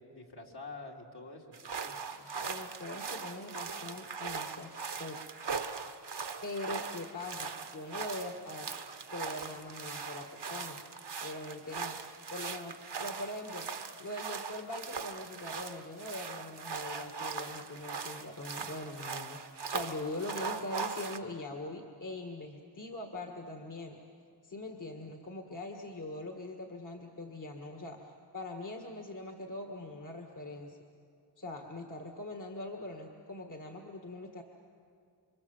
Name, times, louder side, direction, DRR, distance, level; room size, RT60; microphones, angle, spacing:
voice 1, 0.0-2.5, left 3 dB, 65° left, -1 dB, 2.9 m, -48 dB
sound 1, 1.5-21.2, right 5 dB, 70° right, 1.2 m, -40 dB
voice 2, 2.4-4.7 5.0-5.2 6.4-8.7 9.1-10.8 11.2-12.0 12.3-13.7 14.0-19.4 19.7-24.0 24.4-28.0 28.3-30.8 31.4-34.4, left 2 dB, 45° left, 3 dB, 1.7 m, -42 dB
28.0 x 24.5 x 7.3 m, 2.3 s
wide cardioid pair, 70°, 42 cm